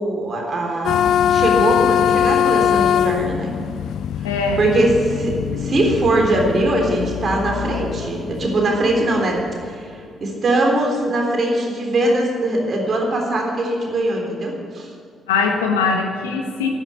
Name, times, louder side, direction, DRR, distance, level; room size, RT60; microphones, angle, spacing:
voice 1, 0.0-3.5 4.6-9.9 10.2-14.9, right 1 dB, 50° right, 0 dB, 3.7 m, -21 dB
sound 1, 0.8-9.7, left 9 dB, 65° left, 0.4 m, -22 dB
voice 2, 4.2-4.7 15.3-16.7, left 5 dB, 85° left, 3 dB, 1.5 m, -21 dB
10.5 x 9.8 x 9.1 m, 2.3 s
hypercardioid pair, 45°, 0 cm